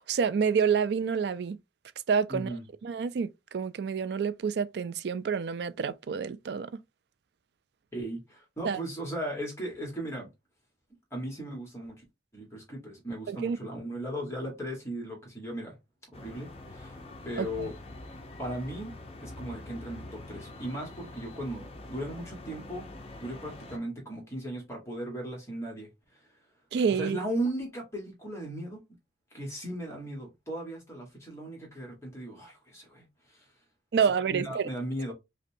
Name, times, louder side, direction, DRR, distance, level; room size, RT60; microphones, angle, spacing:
voice 1, 0.0-1.6 2.1-2.6 2.8-6.7 8.6-8.8 13.3-13.6 17.4-17.7 26.7-27.2 33.9-34.7, right 6 dB, 60° right, 0.3 m, -28 dB
voice 2, 2.3-2.6 7.9-10.3 11.1-12.0 12.3-15.8 16.1-17.0 17.2-17.7 18.4-18.9 19.2-22.9 23.2-25.9 26.9-28.8 29.3-33.5 34.0-35.1, right 1 dB, 15° left, 1.3 m, -37 dB
sound 1, 16.1-23.8, left 2 dB, 30° left, 0.6 m, -45 dB
5.1 x 2.2 x 2.7 m
head